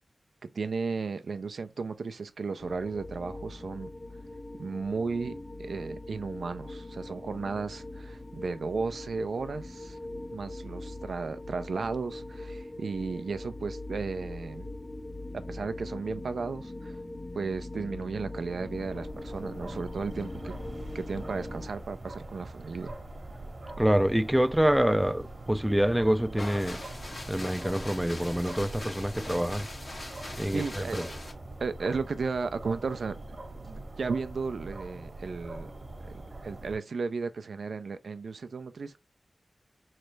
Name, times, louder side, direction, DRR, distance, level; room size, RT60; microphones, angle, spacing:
voice 1, 0.5-3.9 4.6-10.0 10.3-14.7 15.3-17.0 17.3-20.5 20.9-23.0 30.1-31.2 31.6-33.2 33.5-35.7 36.0-39.0, right 4 dB, 90° right, 0.4 m, -34 dB
sound 1, 2.6-21.7, left 2 dB, 45° left, 0.5 m, -41 dB
sound 2, 18.3-36.8, right 2 dB, 60° right, 1.1 m, -43 dB
voice 2, 23.8-26.8 27.3-29.7 30.4-31.1, equal, 10° right, 0.4 m, -26 dB
sound 3, 26.3-31.3, left 2 dB, 65° left, 1.4 m, -42 dB
3.9 x 3.3 x 3.2 m
cardioid pair, 45°, 0 cm